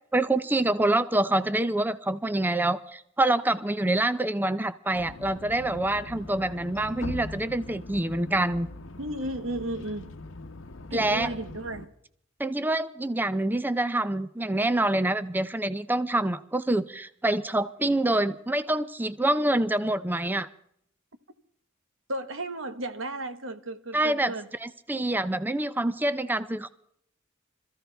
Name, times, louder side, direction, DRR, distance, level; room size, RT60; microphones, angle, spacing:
voice 1, 0.1-8.7 10.9-11.3 12.4-20.5 23.9-24.3 24.6-26.7, right 1 dB, 10° right, 0.5 m, -26 dB
sound 1, 4.9-11.9, left 2 dB, 75° left, 0.9 m, -41 dB
voice 2, 9.0-10.1 10.9-11.9 22.1-24.5 24.9-25.0, right 1 dB, 80° right, 1.4 m, -34 dB
26.0 x 14.5 x 3.4 m
head